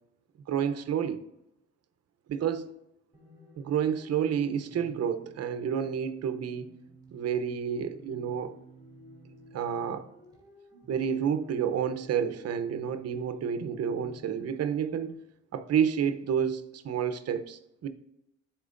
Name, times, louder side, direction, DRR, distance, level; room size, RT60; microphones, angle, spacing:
voice 1, 0.5-1.2 2.3-2.7 3.6-6.7 7.1-8.5 9.5-10.1 10.9-15.2 15.5-17.9, right 8 dB, 55° right, 0.7 m, -30 dB
sound 1, 3.1-15.1, right 1 dB, 15° right, 2.6 m, -53 dB
12.0 x 4.5 x 2.5 m
cardioid pair, 90°, 30 cm